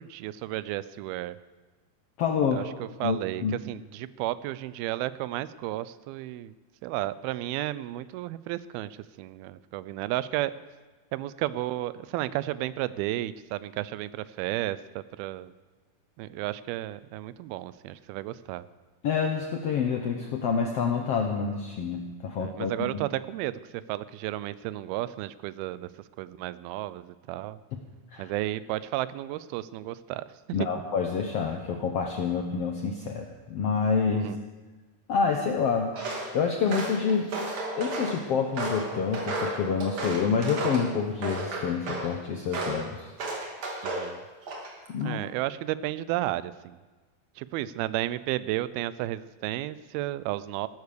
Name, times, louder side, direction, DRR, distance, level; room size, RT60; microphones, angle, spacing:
voice 1, 0.0-1.4 2.5-6.5 6.8-10.5 11.1-15.5 16.2-18.6 22.4-23.6 23.9-25.9 26.2-27.6 28.2-30.7 34.1-34.4 43.8-44.2 45.0-46.8 47.4-50.7, right 15 dB, 85° right, 17 dB, 2.5 m, -33 dB
voice 2, 2.2-2.6 3.0-3.6 19.0-23.0 28.1-28.3 30.5-34.3 35.1-35.9 36.3-37.3 37.8-43.1 44.9-45.2, left 6 dB, 90° left, 3 dB, 1.3 m, -27 dB
Walk footsteps, 35.9-36.3 36.7-38.2 38.6-40.9 41.2-42.1 42.5-42.8 43.2-44.1 44.4-44.9, right 2 dB, 45° right, 3.5 m, -33 dB
16.5 x 13.0 x 6.8 m, 1.3 s
omnidirectional pair, 4.4 m